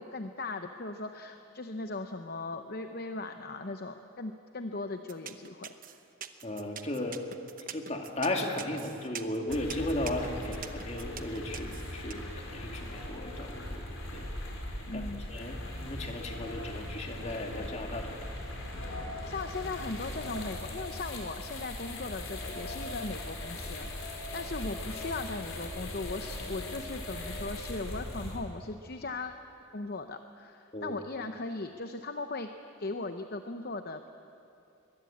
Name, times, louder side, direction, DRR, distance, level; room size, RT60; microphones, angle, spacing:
voice 1, 0.0-5.7 14.9-15.3 19.3-29.3 29.7-32.5 32.8-34.1, left 3 dB, 45° left, 7 dB, 0.8 m, -38 dB
sound 1, 5.1-12.1, right 9 dB, 40° right, 0.9 m, -43 dB
voice 2, 6.4-7.2 7.7-13.9 14.1-14.3 14.9-15.0 15.3-18.2 18.7-18.8 30.7-31.0, left 1 dB, 30° left, 3 dB, 2.3 m, -35 dB
sound 2, 9.5-28.4, left 1 dB, 70° left, 4.7 m, -39 dB
22.0 x 21.5 x 8.6 m, 2.7 s
head